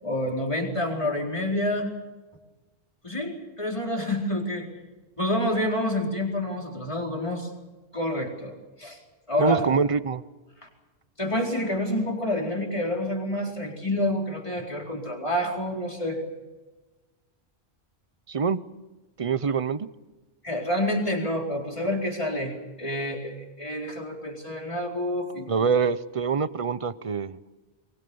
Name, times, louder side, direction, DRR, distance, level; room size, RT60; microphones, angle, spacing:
voice 1, 0.0-1.9 3.0-4.7 5.2-7.5 7.9-9.0 9.3-9.6 10.6-10.7 11.2-16.2 20.4-25.7, left 1 dB, 30° left, 0 dB, 4.3 m, -28 dB
voice 2, 9.4-10.2 18.3-18.6 19.2-19.9 25.5-27.4, right 5 dB, 35° right, 15 dB, 0.8 m, -25 dB
23.5 x 23.0 x 7.1 m, 1.2 s
omnidirectional pair, 1.1 m